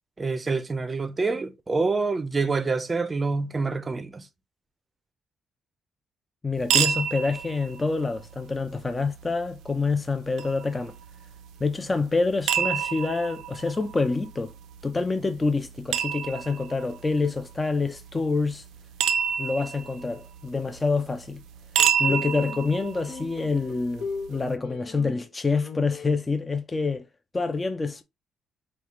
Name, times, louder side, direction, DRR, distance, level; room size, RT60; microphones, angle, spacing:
voice 1, 0.2-4.3, right 4 dB, 25° right, 0.6 m, -27 dB
voice 2, 6.4-10.9 11.6-14.5 14.8-18.6 19.4-21.4 22.0-27.1 27.3-28.0, left 3 dB, 25° left, 0.6 m, -27 dB
sound 1, 6.6-24.5, right 8 dB, 85° right, 0.7 m, -31 dB
sound 2, 21.8-22.6 23.1-25.3 25.6-26.1, left 4 dB, 55° left, 0.9 m, -37 dB
5.4 x 2.4 x 3.1 m
cardioid pair, 90°, 0 cm